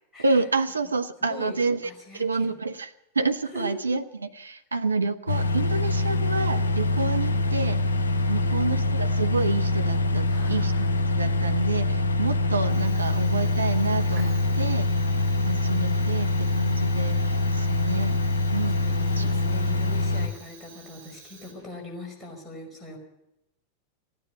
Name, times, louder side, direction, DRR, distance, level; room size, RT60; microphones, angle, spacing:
voice 1, 0.2-7.8 8.3-10.7 11.1-14.9 15.4-18.1 18.5-18.8 19.2-19.3, right 3 dB, 75° right, 8 dB, 0.7 m, -28 dB
voice 2, 1.2-1.6 1.8-2.5 3.5-3.7 8.2-8.6 10.3-10.9 18.7-23.0, left 2 dB, 10° left, -1 dB, 5.3 m, -42 dB
Microwave Beeps Starts Stops, 5.3-20.3, left 2 dB, 70° left, 1.2 m, -24 dB
Fire, 12.6-21.9, right 5 dB, 45° right, 4.8 m, -50 dB
15.5 x 9.8 x 9.2 m, 0.87 s
figure-of-eight pair, 90°, 0 cm